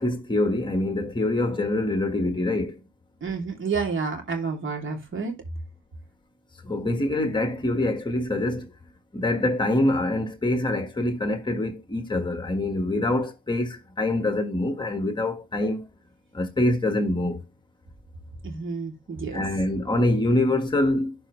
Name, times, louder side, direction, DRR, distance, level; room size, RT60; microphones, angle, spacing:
voice 1, 0.0-2.8 6.6-8.7 9.1-15.8 16.3-17.4 19.3-21.1, left 1 dB, 15° left, 1.6 m, -25 dB
voice 2, 3.2-5.4 18.4-19.4, right 5 dB, 40° right, 3.0 m, -30 dB
11.5 x 4.5 x 3.2 m
cardioid pair, 90°, 30 cm